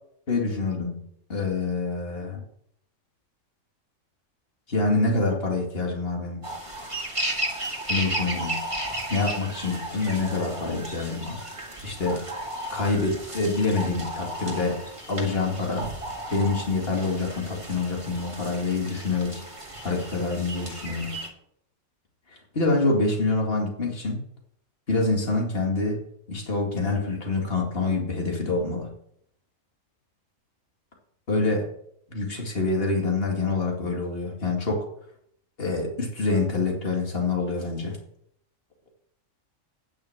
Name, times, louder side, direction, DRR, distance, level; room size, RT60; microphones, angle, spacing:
voice 1, 0.3-1.0 1.3-2.4 4.7-6.5 7.9-8.6 9.1-11.4 11.8-12.2 12.7-14.8 15.1-15.9 16.3-19.4 19.8-21.2 22.5-24.2 24.9-26.0 26.3-28.9 31.3-31.7 32.1-34.9 35.6-38.0, left 3 dB, 45° left, 1 dB, 2.5 m, -26 dB
sound 1, 6.4-21.3, right 1 dB, 25° right, 2.0 m, -34 dB
9.7 x 6.4 x 7.4 m, 0.70 s
omnidirectional pair, 1.4 m